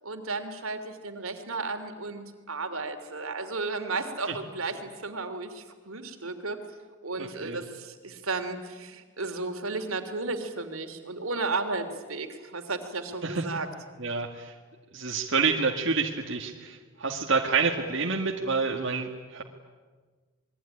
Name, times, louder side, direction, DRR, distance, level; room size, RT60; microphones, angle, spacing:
voice 1, 0.0-6.6 7.0-13.7, right 3 dB, 85° right, 6 dB, 3.1 m, -34 dB
voice 2, 7.2-7.6 13.2-13.6 14.0-14.5 14.9-19.4, right 4 dB, 60° right, 0 dB, 2.0 m, -28 dB
27.5 x 21.5 x 10.0 m, 1.4 s
head